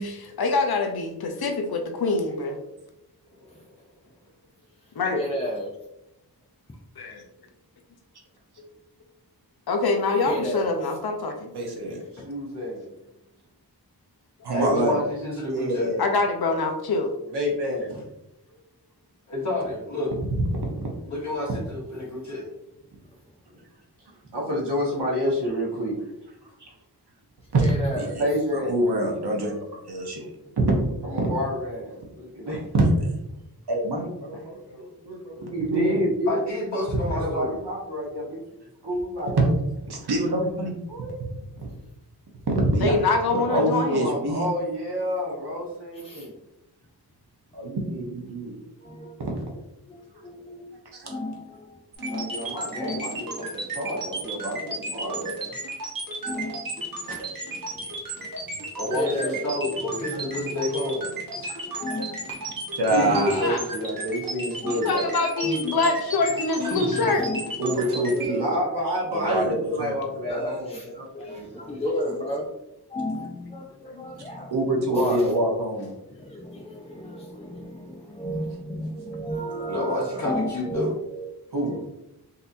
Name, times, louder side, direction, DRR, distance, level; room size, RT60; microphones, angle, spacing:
voice 1, 0.0-2.6 5.0-5.2 7.0-7.2 9.7-11.5 16.0-17.1 42.8-44.1 56.4-56.5 63.3-63.7 64.7-67.3 73.9-74.0, left 3 dB, 65° left, 4 dB, 0.6 m, -25 dB
voice 2, 5.1-5.7 10.3-10.7 27.6-28.2 46.1-46.2 48.8-49.1 49.9-50.0 50.2-50.6 51.1-51.4 52.0-52.4 52.7-53.5 55.0-55.3 56.2-56.7 58.9-59.5 60.1-60.6 61.4-62.5 62.9-63.1 64.6-64.7 65.4-65.5 67.2-67.5 67.7-68.5 70.2-70.8 71.1-71.4 71.7-72.5 72.9-74.5 74.9-75.2 76.1-80.0 80.2-80.8 81.6-81.8, equal, 15° left, -1 dB, 0.4 m, -32 dB
voice 3, 11.5-12.0 14.4-15.0 15.5-16.0 27.5-28.2 28.5-29.5 29.9-30.7 32.7-33.1 33.7-36.1 39.4-39.5 39.9-41.3 41.6-41.7 42.6-43.0 43.3-44.4 47.5-48.6 49.2-49.3 50.9-51.2 62.8-63.7 67.6-68.4 69.1-70.0 74.5-75.9 81.5-81.8, right 1 dB, 70° right, -1 dB, 0.9 m, -25 dB
voice 4, 12.1-12.8 17.3-18.0 24.3-26.0 28.2-28.8 31.0-32.6 35.5-36.4 37.1-38.4 38.8-39.5 43.9-46.3 52.1-55.6 57.1-57.6 61.4-61.5 62.9-65.1 68.3-71.7 79.5-79.6, equal, 90° right, -4 dB, 1.3 m, -29 dB
voice 5, 14.5-16.1 19.3-20.1 21.1-22.5 36.3-37.6 58.7-61.1 66.6-67.3 79.7-80.9, left 1 dB, 45° left, -6 dB, 1.5 m, -29 dB
sound 1, 51.9-68.3, right 2 dB, 55° right, 1.1 m, -34 dB
4.0 x 2.7 x 2.6 m, 0.87 s
wide cardioid pair, 60°, 40 cm